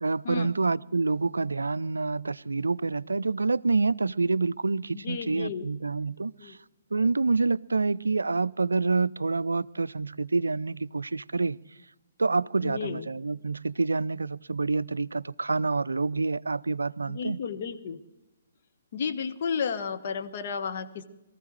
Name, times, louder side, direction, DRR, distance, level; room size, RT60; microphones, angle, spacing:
voice 1, 0.0-6.6 6.9-11.6 12.2-17.4, right 3 dB, 80° right, 0.4 m, -27 dB
voice 2, 4.9-5.6 6.4-6.6 12.6-13.1 17.0-18.0 18.9-21.0, left 6 dB, 50° left, 1.3 m, -33 dB
23.0 x 14.5 x 3.2 m
figure-of-eight pair, 135°, 0 cm